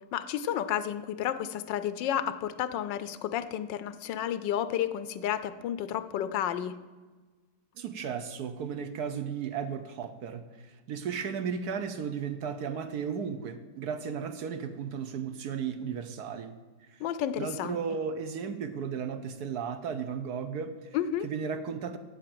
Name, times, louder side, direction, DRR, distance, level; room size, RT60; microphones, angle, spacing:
voice 1, 0.1-6.7 17.0-17.8 20.9-21.3, left 10 dB, 80° left, 13 dB, 1.3 m, -31 dB
voice 2, 7.8-16.5 16.9-17.0 17.4-21.0 21.2-22.0, right 6 dB, 65° right, 9 dB, 1.2 m, -35 dB
8.8 x 8.5 x 7.7 m, 1.3 s
omnidirectional pair, 2.0 m